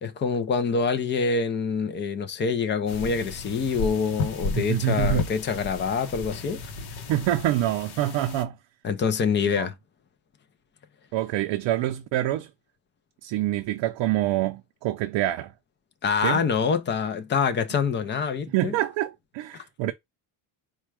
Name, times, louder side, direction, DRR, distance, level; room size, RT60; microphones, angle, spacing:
voice 1, 0.0-6.7 8.8-9.7 16.0-18.7 19.5-19.6, left 5 dB, 25° left, 0.4 m, -26 dB
sound 1, 2.9-8.4, left 4 dB, 60° left, 0.9 m, -33 dB
voice 2, 4.6-5.3 7.1-8.6 9.6-9.7 11.1-12.5 13.2-15.5 16.2-16.5 18.5-19.9, right 13 dB, 75° right, 0.5 m, -26 dB
4.3 x 2.3 x 4.6 m
cardioid pair, 175°, 45 cm